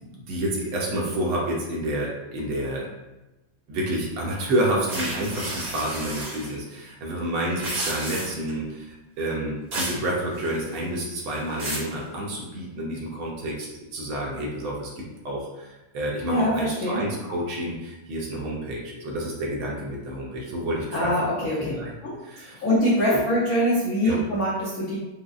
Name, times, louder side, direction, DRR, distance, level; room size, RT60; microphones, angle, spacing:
voice 1, 0.0-2.9 3.7-21.1 21.6-21.9 22.2-22.6 23.1-23.2 24.0-24.2, right 1 dB, 75° right, -2 dB, 1.5 m, -29 dB
sound 1, 4.9-6.5 7.4-8.5 9.7-10.0 10.3-10.8 11.3-11.9, right 1 dB, 55° right, 1.8 m, -32 dB
voice 2, 16.3-17.0 20.9-21.7 22.0-22.2 22.6-25.0, equal, 70° left, -7 dB, 0.8 m, -23 dB
5.1 x 2.0 x 2.4 m, 0.99 s
omnidirectional pair, 2.3 m